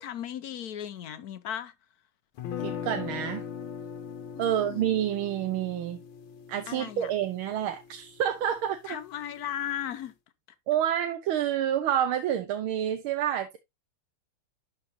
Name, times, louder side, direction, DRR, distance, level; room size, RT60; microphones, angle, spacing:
voice 1, 0.0-1.7 4.3-5.0 6.7-7.1 8.9-10.1, left 10 dB, 65° left, 1.0 m, -36 dB
sound 1, 2.4-8.4, left 8 dB, 85° left, 1.9 m, -39 dB
voice 2, 2.6-3.4 4.4-6.0 6.5-8.8 10.7-13.6, right 10 dB, 90° right, 1.7 m, -28 dB
11.5 x 4.8 x 2.7 m
omnidirectional pair, 2.3 m